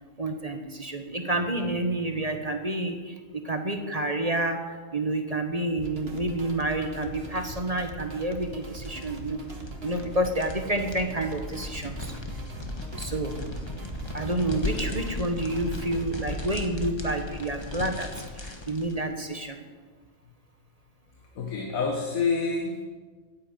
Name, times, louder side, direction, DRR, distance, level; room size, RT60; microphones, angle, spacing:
voice 1, 0.2-9.4 9.8-12.1 13.0-13.4 14.1-18.1 18.3-19.6, right 1 dB, 30° right, 5 dB, 1.2 m, -29 dB
sound 1, 5.7-16.0, right 1 dB, 45° right, 2.0 m, -41 dB
sound 2, 8.4-19.1, left 2 dB, 20° left, 1.4 m, -37 dB
voice 2, 21.4-22.8, left 4 dB, 75° left, 2 dB, 1.7 m, -27 dB
14.0 x 9.0 x 9.0 m, 1.5 s
omnidirectional pair, 1.5 m